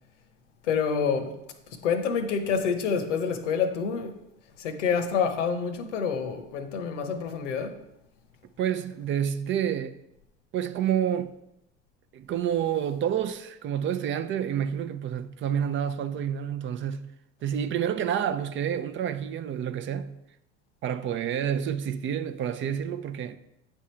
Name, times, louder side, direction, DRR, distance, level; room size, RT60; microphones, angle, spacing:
voice 1, 0.6-1.4 1.7-4.2 4.6-7.8, left 6 dB, 85° left, 0.8 m, -27 dB
voice 2, 8.6-10.0 10.5-11.4 12.1-17.1 17.4-20.2 20.8-23.4, right 9 dB, 35° right, 0.4 m, -29 dB
8.7 x 3.6 x 4.3 m
hypercardioid pair, 85°, 35 cm